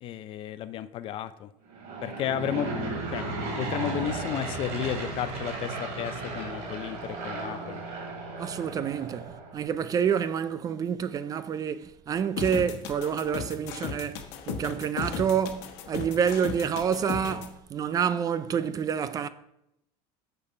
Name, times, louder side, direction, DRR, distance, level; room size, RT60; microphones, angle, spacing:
voice 1, 0.0-1.5 2.0-7.8, left 10 dB, 45° left, 0.5 m, -33 dB
Aircraft / Engine, 1.7-9.7, right 2 dB, 60° right, 2.9 m, -35 dB
voice 2, 8.4-19.3, right 7 dB, 30° right, 0.4 m, -28 dB
sound 1, 12.4-17.5, left 7 dB, 65° left, 1.2 m, -36 dB
6.9 x 6.8 x 5.5 m
cardioid pair, 140°, 13 cm